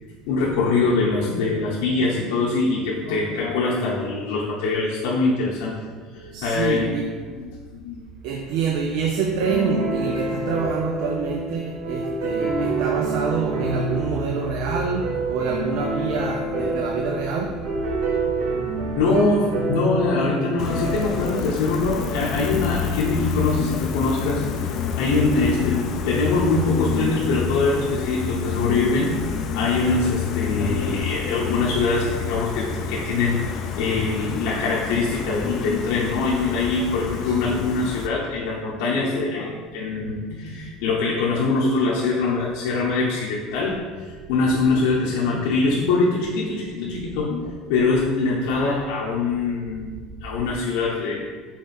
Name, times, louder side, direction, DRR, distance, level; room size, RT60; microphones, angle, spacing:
voice 1, 0.3-5.7 6.1-7.0 7.3-7.5 7.7-8.0 18.9-29.1 29.3-51.2, left 3 dB, 85° left, -5 dB, 1.0 m, -23 dB
voice 2, 6.3-7.0 8.2-18.7 37.4-37.6, right 5 dB, 65° right, 1 dB, 0.6 m, -27 dB
sound 1, 9.4-21.4, right 2 dB, 85° right, 1.2 m, -27 dB
Gull seagull, 20.6-38.1, left 6 dB, 45° left, 0.5 m, -28 dB
6.1 x 3.9 x 4.1 m, 1.5 s
cardioid pair, 155°, 0 cm